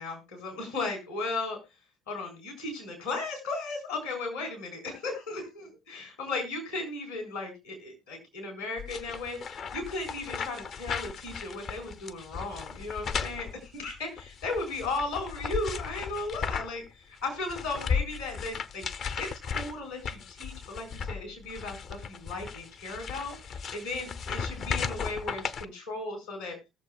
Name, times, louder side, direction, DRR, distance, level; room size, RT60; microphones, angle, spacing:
voice 1, 0.0-1.6 2.1-18.8 19.2-26.6, left 3 dB, 80° left, 2 dB, 4.2 m, -36 dB
sound 1, 8.8-16.9 17.2-25.7, left 6 dB, 50° left, 0.7 m, -36 dB
20.0 x 7.2 x 2.3 m, 0.24 s
figure-of-eight pair, 50°, 0 cm